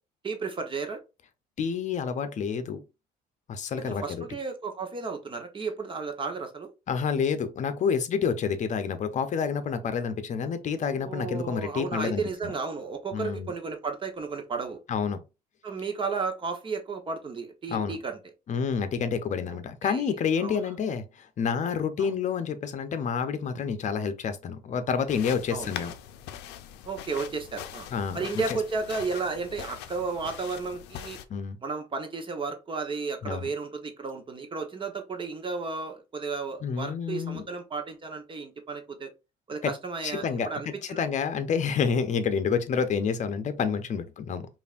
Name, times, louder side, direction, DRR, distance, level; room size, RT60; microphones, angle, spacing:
voice 1, 0.2-1.0 3.8-6.7 10.9-14.8 15.6-18.2 19.8-20.1 20.4-20.6 22.0-22.1 25.5-25.7 26.8-27.9 28.1-31.2 31.6-39.1 39.5-41.0, right 4 dB, 30° right, 1.0 m, -33 dB
voice 2, 1.6-2.8 3.5-4.2 6.9-12.5 13.1-13.5 14.9-15.2 17.7-18.0 18.5-25.9 27.9-28.2 31.3-31.6 33.2-33.5 36.6-37.5 39.6-39.7 40.0-44.5, left 6 dB, 45° left, 0.7 m, -29 dB
sound 1, 25.1-31.3, left 10 dB, 90° left, 0.5 m, -42 dB
5.2 x 2.6 x 2.5 m
cardioid pair, 110°, 17 cm